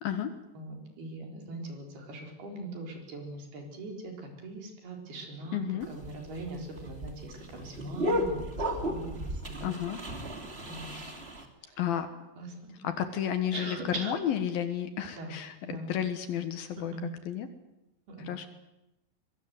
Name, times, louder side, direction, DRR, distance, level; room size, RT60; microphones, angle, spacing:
voice 1, 0.0-0.3 5.5-5.9 9.6-10.0 10.9-11.1 11.8-12.1 12.8-16.9 17.3-17.5 18.2-18.5, left 9 dB, 65° left, 9 dB, 2.9 m, -32 dB
voice 2, 0.5-9.7 10.6-10.9 11.6-11.8 12.4-12.8 13.5-14.1 15.2-15.3 15.6-15.9 16.9-17.1 18.1-18.3, right 2 dB, 65° right, 2 dB, 6.2 m, -41 dB
sound 1, 5.8-11.4, equal, 20° right, 1.8 m, -34 dB
23.5 x 23.0 x 7.9 m, 0.91 s
omnidirectional pair, 4.9 m